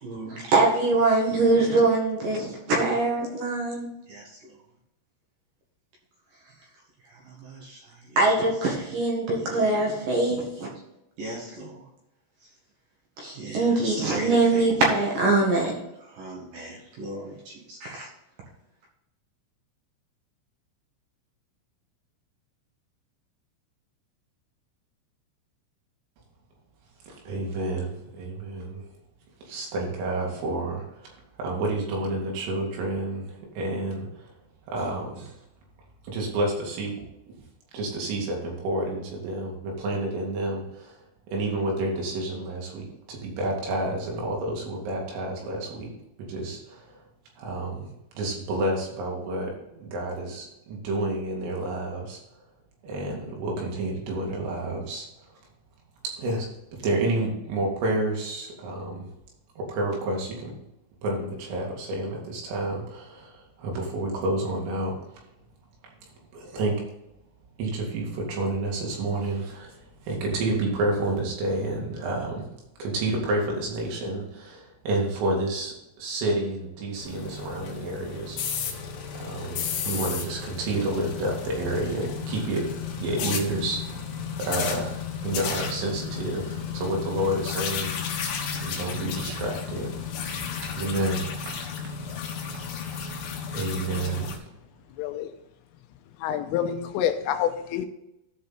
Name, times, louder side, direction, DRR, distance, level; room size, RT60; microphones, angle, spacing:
voice 1, 0.0-4.2 7.4-7.8 8.1-10.7 11.2-11.8 13.2-15.7 16.2-18.1, right 2 dB, 55° right, -1 dB, 2.7 m, -24 dB
voice 2, 27.1-28.8 29.4-34.2 34.7-35.4 36.0-37.0 37.7-41.0 41.3-45.9 46.2-47.0 47.4-52.2 52.8-55.1 56.0-59.1 59.6-60.6 61.0-65.1 66.3-66.9 67.6-72.5 72.8-78.4 79.1-84.0 84.4-88.0 88.6-90.0 90.6-91.3 91.8-92.1 92.9-93.3 93.5-94.4, right 2 dB, 75° right, -1 dB, 4.8 m, -30 dB
sound 1, 77.0-94.4, left 6 dB, 65° left, 3.1 m, -33 dB
voice 3, 95.0-95.3 96.2-97.9, left 9 dB, 85° left, 7 dB, 3.3 m, -27 dB
14.5 x 5.3 x 4.1 m, 0.87 s
omnidirectional pair, 6.0 m